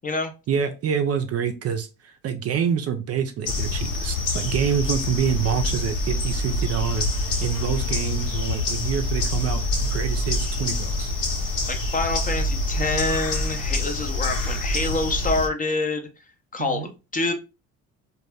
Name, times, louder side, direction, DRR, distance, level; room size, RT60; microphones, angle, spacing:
voice 1, 0.5-11.1 16.6-16.9, right 8 dB, 45° right, 7 dB, 0.5 m, -27 dB
sound 1, 3.5-15.5, left 2 dB, 65° left, 1.0 m, -26 dB
voice 2, 11.7-16.1 16.5-17.3, left 3 dB, 25° left, 5 dB, 0.5 m, -26 dB
2.3 x 2.0 x 3.3 m, 0.29 s
supercardioid pair, 70°, 36 cm